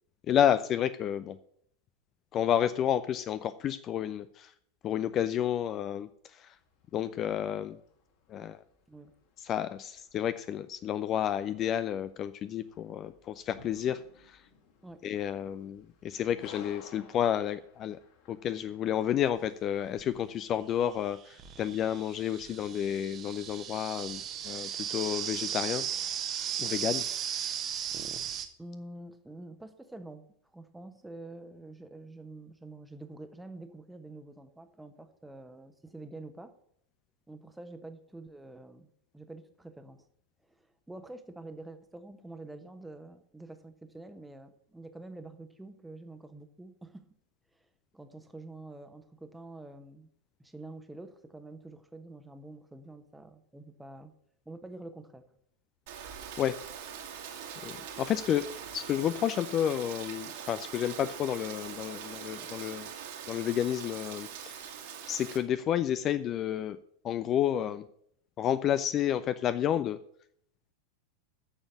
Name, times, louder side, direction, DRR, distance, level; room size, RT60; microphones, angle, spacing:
voice 1, 0.3-1.4 2.3-4.5 4.8-6.5 6.9-7.8 8.3-8.6 9.4-14.4 15.0-18.0 18.3-25.8 26.6-27.5 56.4-56.6 57.6-58.5 58.7-62.9 63.3-64.7 65.1-66.8 67.0-67.8 68.4-70.0, left 10 dB, 30° left, 12 dB, 0.5 m, -31 dB
sound 1, 6.5-21.0, left 5 dB, 50° left, 2.6 m, -57 dB
sound 2, 20.0-20.1 21.0-28.5, right 9 dB, 30° right, 1.2 m, -36 dB
voice 2, 28.6-30.3 30.5-36.5 37.3-40.1 40.5-47.1 47.9-50.1 50.4-54.1 54.4-55.2, right 2 dB, 5° right, 8 dB, 1.2 m, -47 dB
Rain, 55.9-65.4, right 8 dB, 50° right, 2.1 m, -42 dB
8.8 x 7.1 x 8.4 m, 0.68 s
figure-of-eight pair, 90°, 0 cm